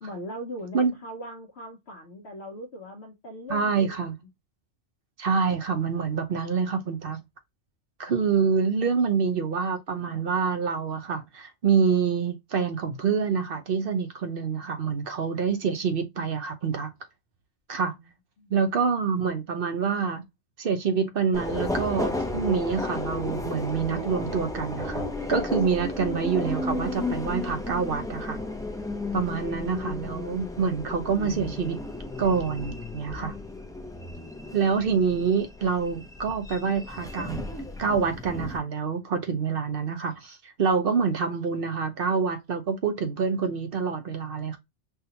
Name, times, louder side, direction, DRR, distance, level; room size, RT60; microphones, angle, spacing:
voice 1, 0.0-4.1 17.9-18.1 18.4-18.5, equal, 65° left, 1.0 m, -40 dB
voice 2, 3.5-4.1 5.2-7.2 8.0-16.9 17.7-17.9 18.5-20.2 20.6-28.4 29.1-31.8 32.2-33.3 34.5-37.4 37.8-44.6, right 6 dB, 55° right, 0.9 m, -26 dB
Subway metro underground, 21.3-38.6, left 2 dB, 5° left, 0.5 m, -33 dB
5.7 x 2.4 x 2.8 m
omnidirectional pair, 1.2 m